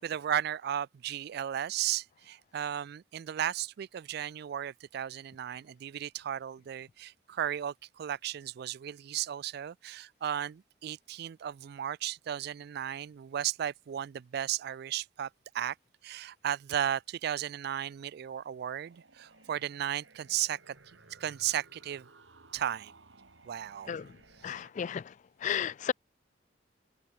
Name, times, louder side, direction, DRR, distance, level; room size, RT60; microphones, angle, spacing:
voice 1, 0.0-15.3 15.5-15.8 16.0-20.8 21.2-22.1 22.5-22.9 23.4-24.0 24.5-24.6, right 10 dB, 60° right, 0.3 m, -35 dB
sound 1, 18.8-24.7, right 3 dB, 90° right, 2.9 m, -58 dB
voice 2, 24.4-25.1 25.4-25.9, left 8 dB, 40° left, 0.3 m, -33 dB
head